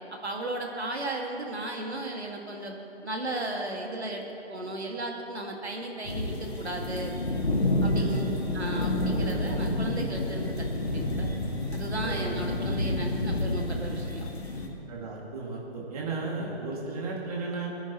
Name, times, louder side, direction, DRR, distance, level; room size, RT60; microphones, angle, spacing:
voice 1, 0.2-4.2 4.5-7.2 7.8-8.2 8.5-11.3 11.7-14.3, right 1 dB, 75° right, 1 dB, 2.1 m, -35 dB
sound 1, 6.0-14.7, left 1 dB, 70° left, 1.9 m, -29 dB
voice 2, 7.9-8.4 9.1-9.3 12.0-12.4 14.9-17.7, right 3 dB, 35° right, -3 dB, 2.4 m, -35 dB
22.0 x 9.9 x 3.1 m, 2.9 s
figure-of-eight pair, 145°, 33 cm